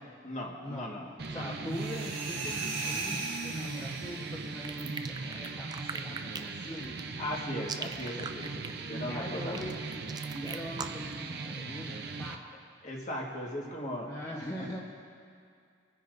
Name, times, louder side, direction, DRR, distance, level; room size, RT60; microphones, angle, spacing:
voice 1, 0.2-1.6 7.2-9.6 12.8-14.1, left 1 dB, 40° left, -2 dB, 1.5 m, -38 dB
sound 1, 1.2-12.4, right 4 dB, 55° right, 0.7 m, -39 dB
voice 2, 1.3-7.0 8.9-10.0 10.3-12.5 14.0-14.8, equal, 20° left, -5 dB, 1.0 m, -42 dB
sound 2, 1.7-4.4, right 3 dB, 80° right, 3.0 m, -37 dB
sound 3, 4.6-11.1, right 5 dB, 20° right, 0.4 m, -40 dB
28.0 x 9.9 x 2.6 m, 2.3 s
head